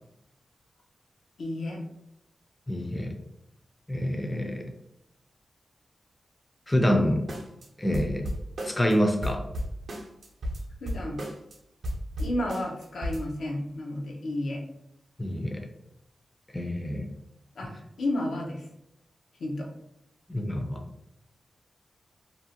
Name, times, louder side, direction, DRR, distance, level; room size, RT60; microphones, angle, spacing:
voice 1, 1.4-1.8 10.8-11.2 12.2-14.6 17.6-18.6 19.4-19.7, left 1 dB, 85° left, 0 dB, 0.5 m, -32 dB
voice 2, 2.7-3.2 3.9-4.7 6.7-7.3 7.8-8.3 8.6-9.4 15.2-15.7 16.5-17.1 20.3-20.8, equal, 20° left, 4 dB, 0.4 m, -26 dB
sound 1, 7.3-7.7 7.9-8.9 9.2-11.5 11.8-13.2, equal, 75° right, 0.5 m, -33 dB
2.5 x 2.1 x 2.7 m, 0.79 s
cardioid pair, 75°, 0 cm